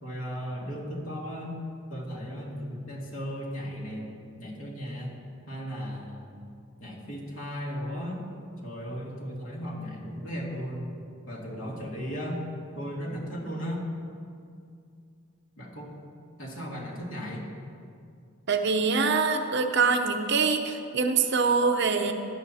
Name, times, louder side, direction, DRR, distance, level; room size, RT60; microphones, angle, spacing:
voice 1, 0.0-1.6 1.9-4.1 4.4-5.2 5.5-6.4 6.8-8.2 8.6-10.9 11.3-12.4 12.8-13.8 15.6-15.9 16.4-17.5, equal, 80° left, -3 dB, 2.4 m, -36 dB
voice 2, 18.5-22.1, right 4 dB, 55° right, 5 dB, 0.8 m, -24 dB
17.0 x 11.0 x 2.8 m, 2.3 s
head